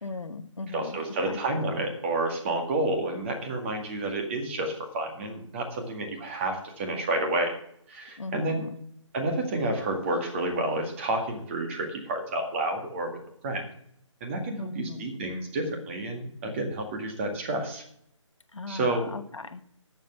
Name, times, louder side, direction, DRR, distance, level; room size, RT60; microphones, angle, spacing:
voice 1, 0.0-1.4 8.2-8.8 14.6-15.0 18.5-19.6, left 3 dB, 70° left, 10 dB, 1.0 m, -38 dB
voice 2, 0.7-7.6 7.9-8.6 9.1-13.2 13.4-13.6 14.2-17.8 18.7-19.1, right 2 dB, 25° right, 3 dB, 2.0 m, -30 dB
10.0 x 7.4 x 7.0 m, 0.69 s
figure-of-eight pair, 150°, 17 cm